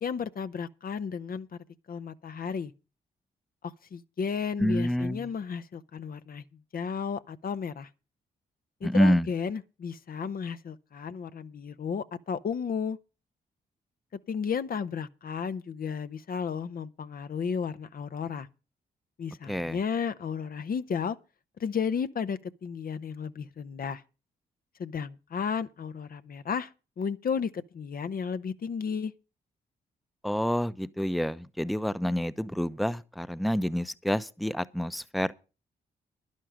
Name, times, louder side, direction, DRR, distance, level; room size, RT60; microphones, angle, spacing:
voice 1, 0.0-1.6 1.9-2.7 3.6-6.4 6.7-7.9 8.8-13.0 14.3-18.5 19.2-21.2 21.6-24.0 24.8-29.1, left 6 dB, 55° left, 0.9 m, -33 dB
voice 2, 4.6-5.2 8.8-9.3 19.5-19.8 30.2-35.3, equal, ahead, 0.8 m, -27 dB
11.5 x 11.0 x 5.0 m
supercardioid pair, 45°, 18 cm